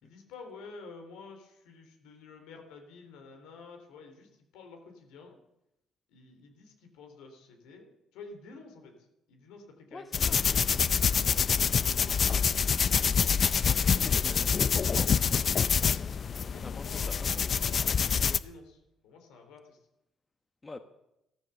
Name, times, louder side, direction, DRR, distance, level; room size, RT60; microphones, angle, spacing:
voice 1, 0.0-5.4 6.1-8.9 9.3-13.2 13.6-14.4 16.3-19.8, left 4 dB, 85° left, 4 dB, 3.4 m, -50 dB
voice 2, 9.9-10.4 14.0-15.1 16.6-17.3 20.6-20.8, left 3 dB, 25° left, 8 dB, 1.2 m, -44 dB
sound 1, 10.1-18.4, left 6 dB, 50° left, 0.7 m, -26 dB
14.5 x 13.0 x 6.9 m, 0.87 s
supercardioid pair, 70°, 0 cm